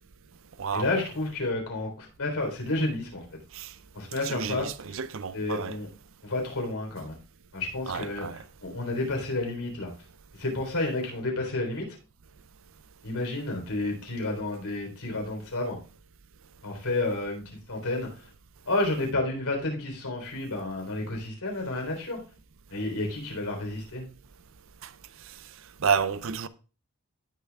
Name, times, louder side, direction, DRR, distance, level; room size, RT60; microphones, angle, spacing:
voice 1, 0.7-3.4 3.9-4.7 5.3-5.9 6.2-7.2 7.5-9.9 10.4-11.9 13.0-15.8 16.6-18.3 18.7-22.2 22.7-24.0, left 2 dB, 90° left, 3.7 m, -31 dB
voice 2, 4.2-5.8 7.9-8.4 24.8-24.9 25.8-26.5, right 6 dB, 65° right, 0.5 m, -30 dB
17.0 x 6.7 x 2.3 m
head